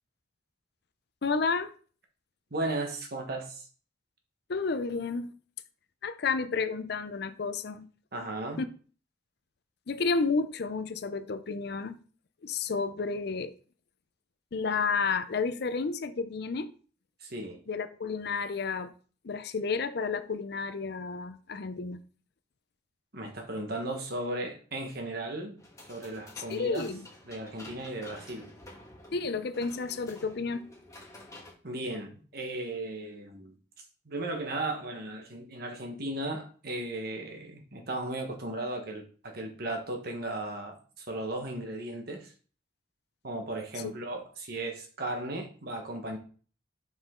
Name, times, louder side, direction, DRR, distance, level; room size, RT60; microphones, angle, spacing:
voice 1, 1.2-1.7 4.5-5.3 6.0-7.9 8.6-8.7 9.9-12.0 12.4-13.5 14.5-16.7 17.7-18.9 19.2-22.0 26.5-27.1 29.1-30.7 43.8-43.9, left 4 dB, 55° left, 0.5 m, -31 dB
voice 2, 2.5-3.7 8.1-8.6 17.2-17.6 23.1-25.6 25.9-26.8 27.2-28.5 31.6-33.5 34.0-42.3 43.2-46.2, right 2 dB, 50° right, 1.3 m, -36 dB
sound 1, 25.6-31.5, left 1 dB, 15° left, 1.6 m, -50 dB
5.5 x 5.1 x 3.7 m
head